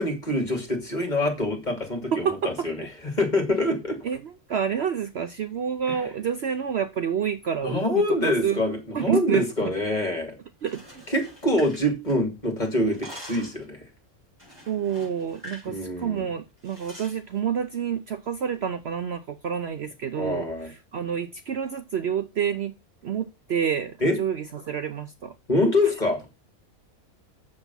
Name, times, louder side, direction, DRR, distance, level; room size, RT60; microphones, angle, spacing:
voice 1, 0.0-2.9 3.1-4.0 5.9-6.1 7.6-10.3 11.1-13.8 15.7-16.3 20.2-20.7 24.0-24.1 25.5-26.2, left 1 dB, 30° left, 2.8 m, -25 dB
voice 2, 2.1-2.7 4.0-7.8 8.2-8.6 8.9-9.7 10.6-11.0 14.7-22.7 23.0-25.3, right 8 dB, 55° right, 0.8 m, -28 dB
sound 1, 10.5-12.4 12.7-13.6 14.4-15.7 16.0-16.2 16.6-17.2, equal, 20° right, 5.4 m, -45 dB
8.1 x 7.1 x 5.5 m
omnidirectional pair, 1.5 m